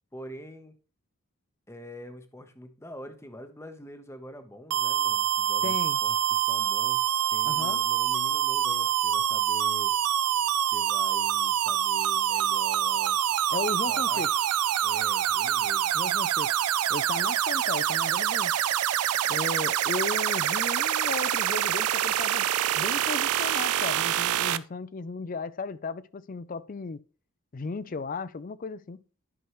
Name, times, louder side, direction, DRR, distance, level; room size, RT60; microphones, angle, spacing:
voice 1, 0.1-0.7 1.7-5.7 6.0-9.9 10.6-13.2 13.9-14.2 14.8-15.9, equal, 10° left, 0.9 m, -45 dB
sound 1, 4.7-24.6, right 11 dB, 80° right, 0.4 m, -26 dB
voice 2, 5.6-6.0 7.4-7.8 13.5-14.3 15.9-16.5 16.9-18.6 19.3-22.5 22.7-27.0 27.5-29.0, left 4 dB, 35° left, 0.4 m, -35 dB
11.0 x 6.2 x 3.0 m
head